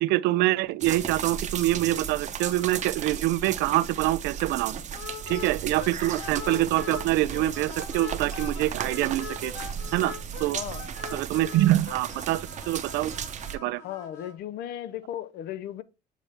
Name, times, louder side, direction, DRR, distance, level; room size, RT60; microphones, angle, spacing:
voice 1, 0.0-4.7 5.3-9.5 9.9-10.1 10.4-10.6 11.1-13.1 13.5-13.8, right 16 dB, 85° right, 0.4 m, -25 dB
sound 1, 0.8-13.6, right 8 dB, 45° right, 0.8 m, -35 dB
sound 2, 2.4-2.9 3.2-3.3 3.7-3.8 4.9-7.1 7.3-14.3, left 6 dB, 85° left, 1.6 m, -42 dB
voice 2, 10.5-10.9 13.8-15.8, left 11 dB, 70° left, 0.6 m, -36 dB
7.3 x 4.1 x 3.5 m
cardioid pair, 110°, 17 cm